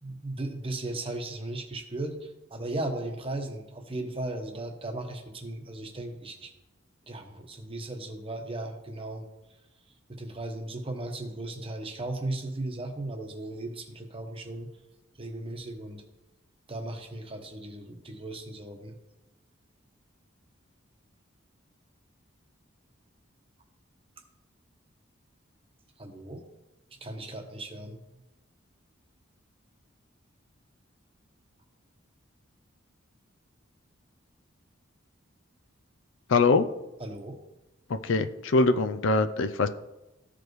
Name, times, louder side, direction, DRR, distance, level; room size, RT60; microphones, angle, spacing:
voice 1, 0.0-6.5 7.1-9.3 10.1-14.7 15.2-16.0 16.7-18.9 26.0-26.4 27.0-28.0 37.0-37.4, right 2 dB, 25° right, 4 dB, 1.0 m, -36 dB
voice 2, 36.3-36.6 37.9-39.7, left 3 dB, 65° left, 9 dB, 0.4 m, -23 dB
14.5 x 5.0 x 3.1 m, 0.99 s
head